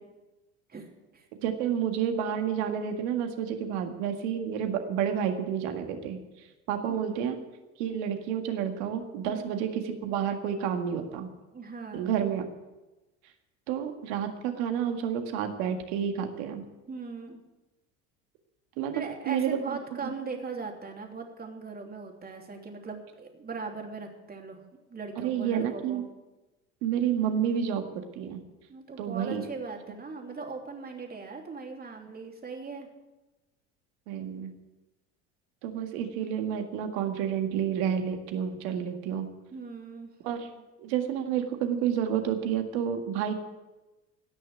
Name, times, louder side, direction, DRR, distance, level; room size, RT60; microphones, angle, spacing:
voice 1, 0.7-1.3 6.9-7.3 9.3-9.7 11.5-12.2 16.9-17.4 18.9-24.6 24.9-26.0 28.7-32.9 39.5-40.1, right 4 dB, 25° right, 2 dB, 3.0 m, -39 dB
voice 2, 1.4-7.4 7.8-11.3 11.9-12.4 13.7-16.6 18.8-20.1 25.2-26.1 26.8-28.4 29.0-29.4 34.1-34.5 35.6-39.3 40.2-40.5 40.8-43.4, right 8 dB, 70° right, 6 dB, 1.9 m, -30 dB
17.5 x 6.5 x 8.9 m, 1.1 s
hypercardioid pair, 75°, 35 cm